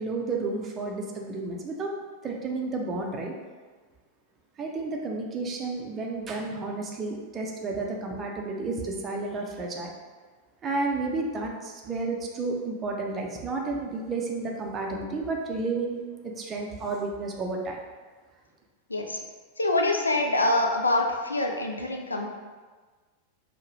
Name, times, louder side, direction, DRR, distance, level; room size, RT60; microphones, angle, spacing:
voice 1, 0.0-2.0 2.2-3.3 4.6-9.9 10.6-17.8, right 3 dB, 25° right, 0 dB, 0.6 m, -31 dB
voice 2, 19.6-22.3, left 2 dB, 80° left, 3 dB, 0.4 m, -25 dB
4.5 x 2.1 x 3.1 m, 1.4 s
figure-of-eight pair, 90°, 0 cm